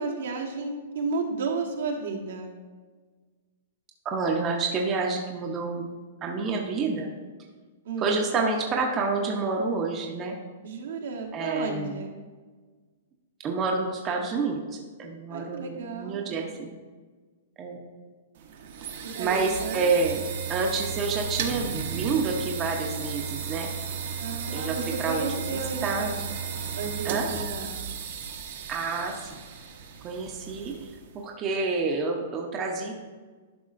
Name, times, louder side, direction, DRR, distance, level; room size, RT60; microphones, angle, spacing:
voice 1, 0.0-2.6 7.8-8.1 10.6-12.2 15.3-16.5 19.1-19.9 24.2-26.3 26.7-27.8, right 4 dB, 70° right, 2 dB, 1.2 m, -33 dB
voice 2, 4.0-5.9 6.2-7.1 8.0-10.4 11.3-12.0 13.4-16.7 17.6-17.8 19.2-20.2 20.5-23.7 24.5-25.2 25.5-26.3 27.0-27.3 28.7-29.3 30.0-30.9 31.1-32.9, right 4 dB, 20° right, 0 dB, 0.7 m, -28 dB
sound 1, 18.4-31.2, right 6 dB, 55° right, 0.9 m, -34 dB
11.5 x 5.3 x 2.5 m, 1.4 s
hypercardioid pair, 165°, 0 cm